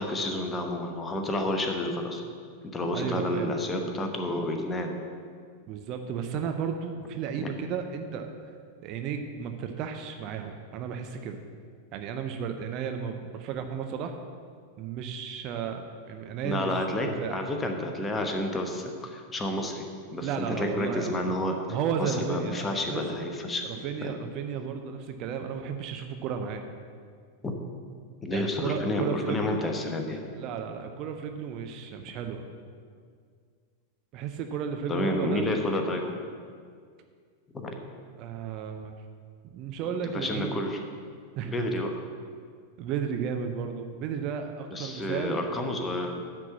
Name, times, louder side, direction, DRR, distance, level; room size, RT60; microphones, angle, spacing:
voice 1, 0.0-2.2 2.7-5.0 7.4-7.5 16.4-19.9 20.1-21.6 22.0-24.1 27.4-27.5 28.2-30.3 34.9-36.2 37.5-37.7 40.1-40.8 41.5-42.0 44.7-46.2, left 1 dB, 15° left, 3 dB, 1.0 m, -30 dB
voice 2, 2.9-3.6 5.7-8.3 8.8-11.4 11.9-14.2 14.8-16.8 17.2-17.4 20.2-21.2 21.7-23.0 23.6-26.6 28.3-29.6 30.4-32.4 34.1-35.7 38.2-39.0 39.4-40.6 41.4-41.7 42.8-45.6, right 7 dB, 40° right, 5 dB, 0.6 m, -33 dB
9.8 x 4.5 x 7.1 m, 2.1 s
figure-of-eight pair, 90°, 0 cm